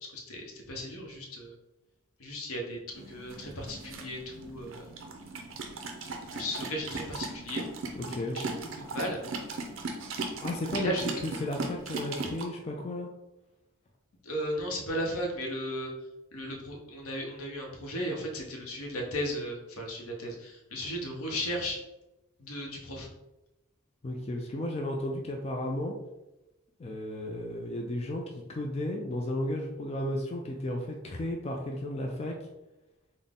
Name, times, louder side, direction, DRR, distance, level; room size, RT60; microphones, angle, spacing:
voice 1, 0.1-1.5 2.2-2.8 3.1-4.9 6.3-7.6 8.3-9.2 10.7-11.2 14.2-15.9 16.3-21.8 22.4-23.1, equal, 85° left, 0 dB, 0.8 m, -35 dB
sound 1, 2.9-12.4, right 3 dB, 65° right, 0.5 m, -38 dB
voice 2, 8.0-8.4 10.4-10.9 11.2-13.1 24.0-25.9 26.8-32.3, left 1 dB, 30° left, 1 dB, 0.3 m, -34 dB
3.9 x 2.1 x 3.5 m, 0.96 s
head